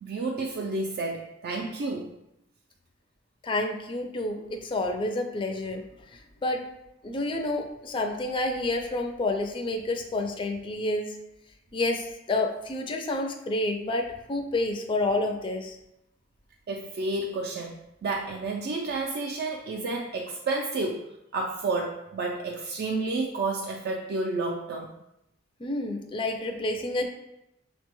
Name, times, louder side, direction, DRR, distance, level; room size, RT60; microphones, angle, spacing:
voice 1, 0.0-2.1 16.7-17.7 18.0-21.0 21.3-24.9, right 3 dB, 55° right, 0 dB, 0.3 m, -30 dB
voice 2, 3.4-5.8 6.1-6.6 7.0-11.2 11.7-15.8 25.6-27.1, left 2 dB, 25° left, 4 dB, 0.3 m, -29 dB
5.9 x 2.2 x 3.0 m, 0.85 s
head